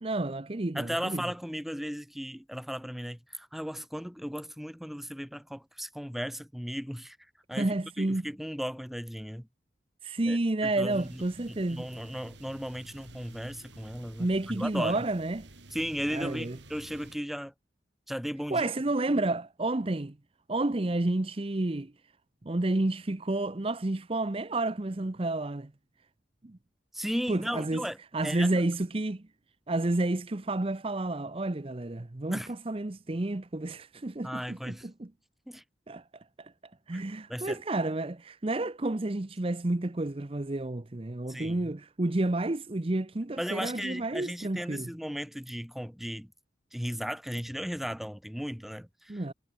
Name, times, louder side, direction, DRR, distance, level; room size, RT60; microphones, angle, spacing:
voice 1, 0.0-1.2 7.5-8.3 10.0-11.8 14.2-15.5 16.1-16.6 18.5-20.2 20.5-21.9 22.4-25.7 26.4-26.6 27.3-27.8 28.1-29.2 29.7-35.1 35.9-36.0 36.4-36.5 36.9-44.9 49.1-49.3, right 2 dB, 30° right, 0.7 m, -30 dB
voice 2, 0.8-7.2 7.5-9.5 10.2-11.2 11.5-15.0 15.7-17.5 18.1-18.7 19.1-19.2 26.9-28.0 28.2-28.5 32.3-32.5 34.2-34.9 35.5-35.6 36.9-37.0 37.3-37.6 41.3-41.7 43.4-46.3 46.7-49.2, equal, ahead, 1.7 m, -36 dB
sound 1, 10.9-17.2, right 2 dB, 75° right, 5.4 m, -52 dB
head